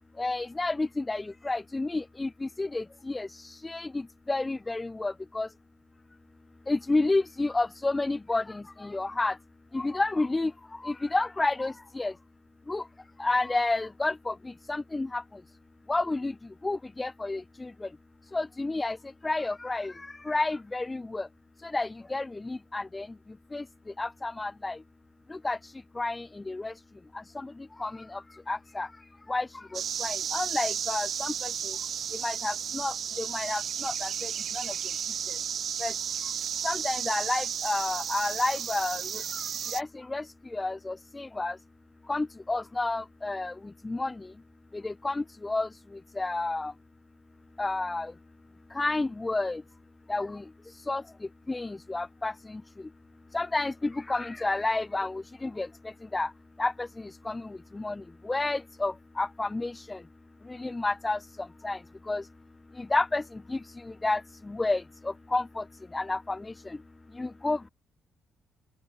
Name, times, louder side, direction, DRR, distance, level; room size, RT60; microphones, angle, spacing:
voice 1, 0.2-4.0 4.3-5.5 6.7-9.4 9.7-10.5 10.8-12.1 12.7-12.8 13.2-14.3 14.7-15.2 15.9-16.3 16.6-17.9 18.3-19.0 19.2-19.9 20.3-21.3 21.6-23.1 23.5-23.6 24.0-24.8 25.4-26.7 27.4-27.5 27.8-28.2 28.5-28.9 29.3-29.5 29.7-31.5 32.2-34.6 35.8-35.9 36.6-39.0 39.7-40.2 40.5-41.5 42.1-43.5 43.8-44.1 44.8-45.7 46.2-46.7 47.6-48.1 48.8-49.6 50.1-50.4 50.9-51.0 51.5-52.6 53.3-55.7 56.1-56.3 56.6-56.9 57.3-57.4 57.7-58.0 58.3-60.0 60.5-61.2 61.6-61.8 62.1-62.2 62.8-63.2 63.5-63.6 64.0-64.2 64.5-64.8 65.3-65.6 65.9-66.4 66.7-66.8 67.2-67.7, left 2 dB, 20° left, 0.6 m, -30 dB
sound 1, 29.7-39.8, right 8 dB, 60° right, 3.9 m, -33 dB
open air
cardioid pair, 90°, 0 cm